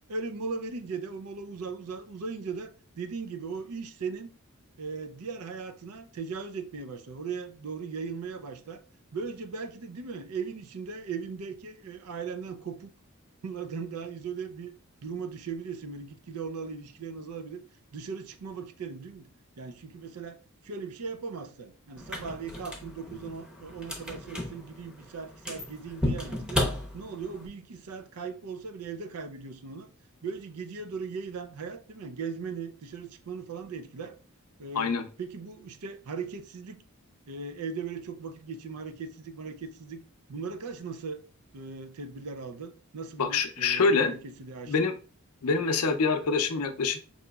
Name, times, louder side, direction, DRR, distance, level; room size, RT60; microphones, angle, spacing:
voice 1, 0.1-4.3 4.8-8.8 9.1-12.9 13.4-14.7 15.0-17.6 17.9-19.3 19.6-20.4 20.6-26.6 26.9-29.9 30.2-34.2 34.6-36.8 37.3-40.0 40.3-41.2 41.5-44.9, right 5 dB, 85° right, 0.5 m, -38 dB
sound 1, 22.0-27.5, left 1 dB, 5° right, 0.8 m, -34 dB
voice 2, 43.2-44.1 44.7-44.9 45.4-47.0, left 4 dB, 85° left, 0.5 m, -25 dB
5.4 x 2.9 x 2.3 m
head